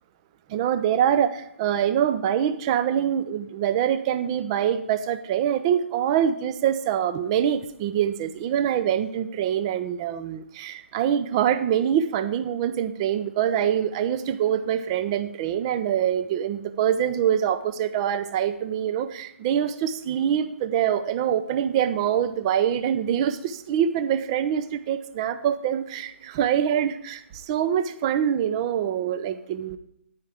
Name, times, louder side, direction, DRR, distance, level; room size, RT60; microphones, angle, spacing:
voice 1, 0.5-29.8, right 9 dB, 25° right, 12 dB, 0.6 m, -24 dB
10.5 x 9.4 x 3.4 m, 0.70 s
figure-of-eight pair, 140°, 7 cm